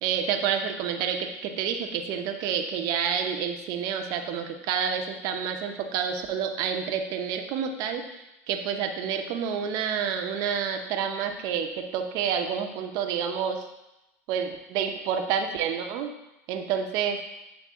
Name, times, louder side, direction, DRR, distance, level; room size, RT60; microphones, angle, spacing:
voice 1, 0.0-13.6 14.3-16.1 16.5-17.2, right 7 dB, 55° right, 5 dB, 0.7 m, -29 dB
8.3 x 3.4 x 3.6 m, 0.92 s
supercardioid pair, 120°, 7 cm